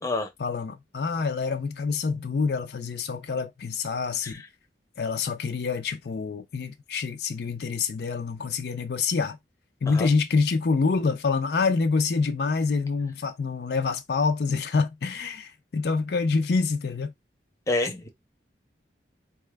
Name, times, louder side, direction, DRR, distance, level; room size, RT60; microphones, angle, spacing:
voice 1, 0.4-4.3 5.0-9.4 9.8-17.1, left 4 dB, 65° left, 0.5 m, -26 dB
voice 2, 17.7-18.1, left 2 dB, 15° left, 0.7 m, -28 dB
4.2 x 2.2 x 3.2 m
head